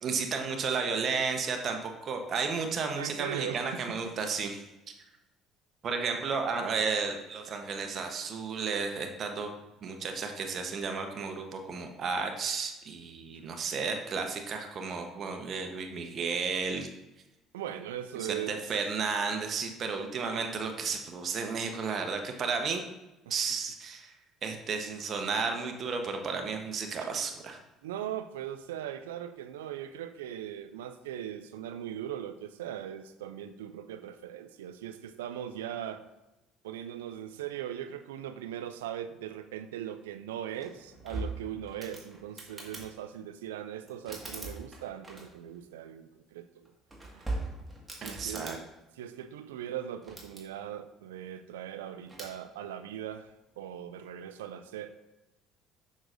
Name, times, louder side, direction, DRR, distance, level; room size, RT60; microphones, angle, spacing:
voice 1, 0.0-4.6 5.8-9.5 9.8-16.9 18.2-22.8 23.3-24.1 24.4-27.6 48.0-48.6, right 5 dB, 50° right, 5 dB, 1.0 m, -33 dB
voice 2, 2.9-4.1 17.5-18.6 27.0-27.1 27.8-36.0 36.6-46.7 47.1-47.3 48.0-48.6 49.0-53.3 53.6-54.9, right 10 dB, 90° right, 10 dB, 0.3 m, -39 dB
sound 1, 40.5-42.9 43.9-45.6 46.6-48.6 49.9-50.4 52.1-52.4, right 2 dB, 15° right, 1.8 m, -40 dB
6.2 x 6.1 x 2.6 m, 1.0 s
hypercardioid pair, 70°, 0 cm